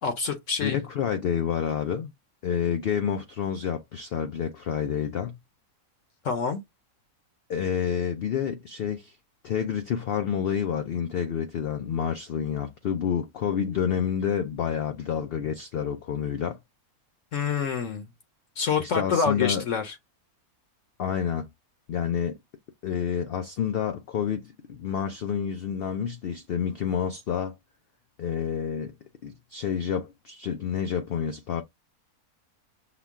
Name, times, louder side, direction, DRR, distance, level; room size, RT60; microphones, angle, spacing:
voice 1, 0.0-0.8 6.2-6.6 17.3-18.1 18.6-19.9, left 6 dB, 65° left, 1.0 m, -27 dB
voice 2, 0.6-2.1 2.4-5.4 7.5-9.2 9.4-16.6 18.8-19.6 21.0-21.5 21.9-22.4 22.8-27.6 28.2-28.9 29.2-31.6, left 8 dB, 80° left, 0.5 m, -29 dB
5.8 x 2.2 x 3.5 m
omnidirectional pair, 1.5 m